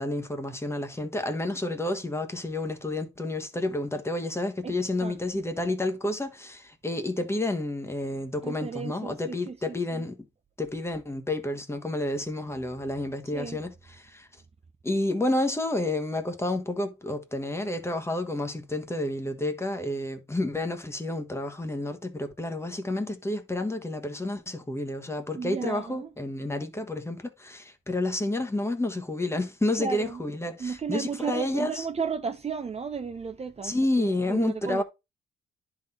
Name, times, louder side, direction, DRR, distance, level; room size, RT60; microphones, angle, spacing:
voice 1, 0.0-10.2 10.6-14.3 14.8-31.9 33.6-34.8, left 1 dB, 15° left, 1.3 m, -30 dB
voice 2, 8.4-10.0 13.3-13.6 25.3-26.1 29.8-30.2 30.6-34.8, right 6 dB, 30° right, 0.7 m, -34 dB
10.5 x 4.0 x 4.3 m
cardioid pair, 90°, 20 cm